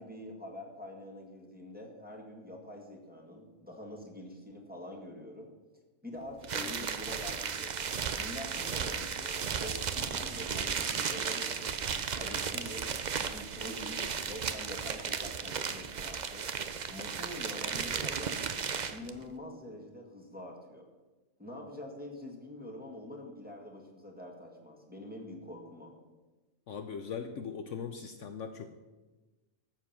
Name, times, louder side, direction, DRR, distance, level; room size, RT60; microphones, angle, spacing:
voice 1, 0.0-5.5 6.0-7.8 8.1-11.8 12.2-12.9 13.1-18.4 18.9-20.9 21.4-25.9, left 1 dB, 5° right, -1 dB, 1.9 m, -45 dB
sound 1, 6.4-19.1, right 6 dB, 50° right, 0.5 m, -35 dB
voice 2, 26.7-28.8, left 6 dB, 65° left, 7 dB, 1.0 m, -40 dB
13.0 x 7.4 x 5.9 m, 1.2 s
omnidirectional pair, 1.5 m